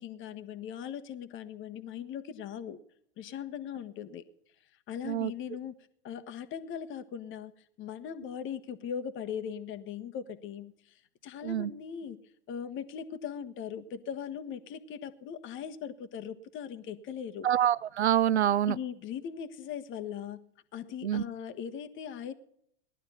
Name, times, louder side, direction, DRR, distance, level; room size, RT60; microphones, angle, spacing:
voice 1, 0.0-2.8 3.2-4.2 4.9-5.7 6.0-7.5 7.8-10.7 11.2-12.2 12.5-17.5 18.6-20.4 20.7-22.3, left 8 dB, 35° left, 9 dB, 1.4 m, -39 dB
voice 2, 17.4-18.7 21.0-21.2, right 10 dB, 85° right, 23 dB, 0.5 m, -26 dB
18.0 x 11.5 x 5.7 m, 0.70 s
hypercardioid pair, 95°, 32 cm